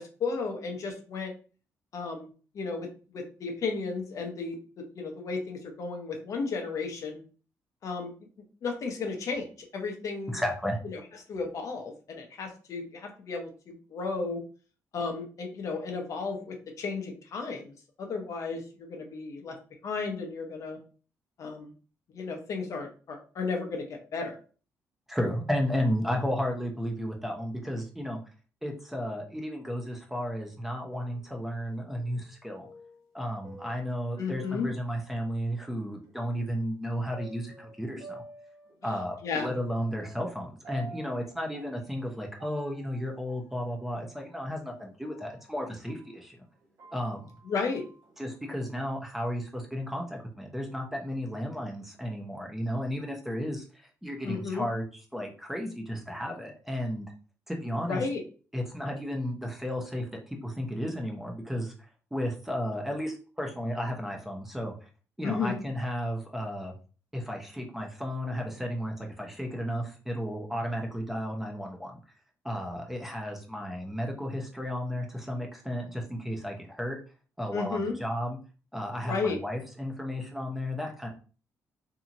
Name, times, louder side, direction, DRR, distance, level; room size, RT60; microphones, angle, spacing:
voice 1, 0.0-1.3 1.9-2.3 2.5-7.2 7.8-8.1 8.6-9.5 9.7-10.4 10.8-11.0 11.3-14.4 14.9-17.7 18.0-19.6 19.8-20.8 21.4-21.7 22.1-24.4 34.2-34.7 38.8-39.5 47.5-47.9 54.2-54.7 57.9-58.2 65.2-65.6 77.5-78.0 79.1-79.4, left 4 dB, 60° left, 3 dB, 0.7 m, -33 dB
voice 2, 10.3-10.8 25.1-28.2 28.6-32.7 33.1-38.2 38.8-46.4 46.9-47.3 48.2-54.9 55.1-57.1 57.5-58.0 58.5-61.7 62.1-64.9 65.2-66.7 67.1-72.0 72.4-77.0 77.4-78.4 78.7-81.1, equal, 5° right, 1 dB, 0.7 m, -33 dB
sound 1, 30.9-35.6 36.0-36.1 37.1-46.2 46.6-48.4, right 2 dB, 60° right, 1.1 m, -51 dB
2.7 x 2.7 x 2.5 m, 0.38 s
cardioid pair, 105°, 6 cm